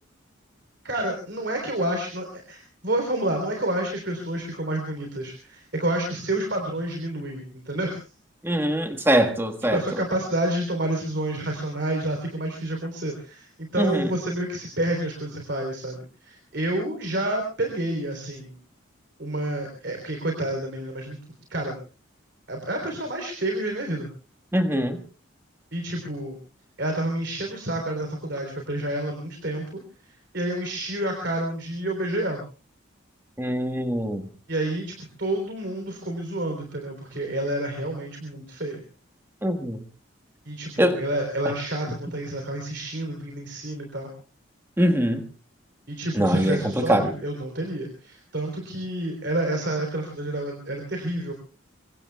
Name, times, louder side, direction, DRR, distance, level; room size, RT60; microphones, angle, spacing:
voice 1, 0.8-8.0 9.7-18.6 19.2-21.2 21.5-21.8 22.5-24.1 25.7-26.4 26.8-32.4 34.5-38.8 40.5-44.1 45.9-51.3, right 1 dB, 55° right, 2 dB, 3.7 m, -29 dB
voice 2, 8.4-9.8 13.8-14.1 24.5-25.0 33.4-34.3 39.4-39.8 40.8-41.0 44.8-45.3 46.1-47.1, equal, 10° right, 5 dB, 1.6 m, -23 dB
25.0 x 24.0 x 2.3 m, 0.37 s
head